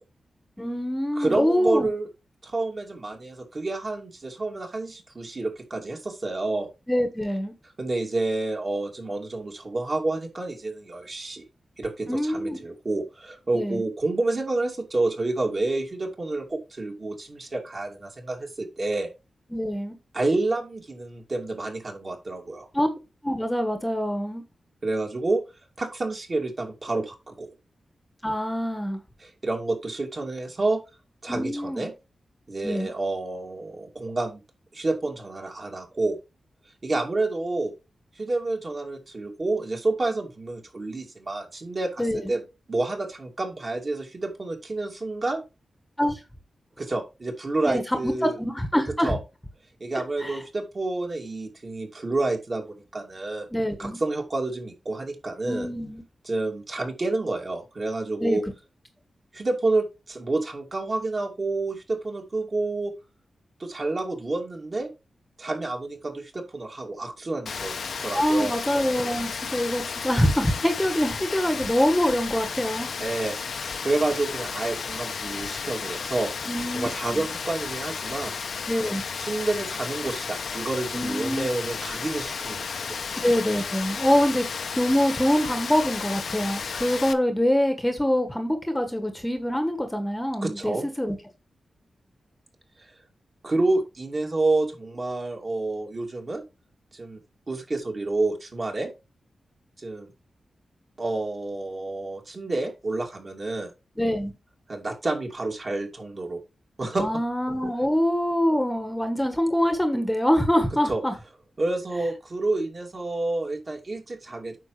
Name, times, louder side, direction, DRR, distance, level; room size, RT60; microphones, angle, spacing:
voice 1, 0.6-1.9 6.9-7.5 12.1-12.6 13.5-13.8 19.5-19.9 22.7-22.9 23.2-24.4 28.2-29.0 31.3-31.9 32.6-32.9 42.0-42.3 46.0-46.2 47.6-49.2 50.2-50.4 53.5-54.0 55.4-56.0 58.2-58.4 68.1-72.9 76.5-77.3 78.7-79.0 80.9-81.5 83.2-84.4 84.8-91.2 104.0-104.3 107.0-111.1, equal, 10° left, 1.3 m, -25 dB
voice 2, 1.2-2.1 2.4-6.7 7.8-11.4 11.8-19.1 20.1-22.7 24.8-25.4 25.8-27.5 29.2-30.8 31.2-31.9 32.5-34.4 34.7-36.2 36.8-37.7 38.2-42.4 42.7-45.4 46.8-48.4 49.0-49.2 49.8-53.5 53.8-55.7 56.2-58.4 59.3-62.9 63.6-64.9 65.4-67.7 68.0-68.5 73.0-76.3 76.7-78.4 79.2-83.0 90.4-90.9 92.8-92.9 93.4-96.4 96.9-97.2 97.5-98.9 99.8-100.1 101.0-103.7 104.7-106.4 106.8-107.0 110.9-111.0 111.6-114.6, right 2 dB, 40° right, 2.5 m, -29 dB
Rain, 67.5-87.1, left 6 dB, 75° left, 0.9 m, -33 dB
9.1 x 6.1 x 3.3 m
wide cardioid pair, 110°, 0 cm